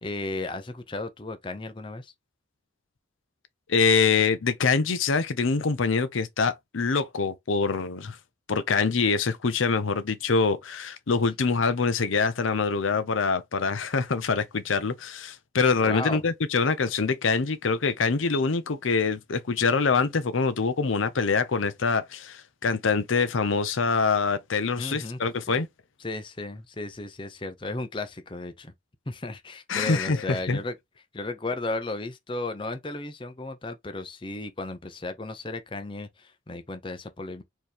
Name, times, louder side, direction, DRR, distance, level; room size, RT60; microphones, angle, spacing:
voice 1, 0.0-2.1 15.8-16.2 24.8-25.2 25.5-25.6 26.0-28.7 29.1-30.7 31.1-37.4, left 2 dB, 25° left, 0.7 m, -34 dB
voice 2, 3.7-8.2 8.5-25.7 29.7-30.6, left 4 dB, 85° left, 0.7 m, -25 dB
4.5 x 3.1 x 3.5 m
head